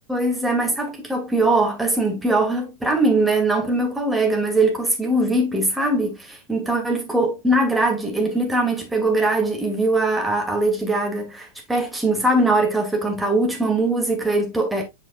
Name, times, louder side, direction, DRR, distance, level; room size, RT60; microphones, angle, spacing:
voice 1, 0.1-14.8, right 2 dB, 5° right, 2.1 m, -21 dB
7.9 x 5.6 x 2.3 m
figure-of-eight pair, 90°, 0 cm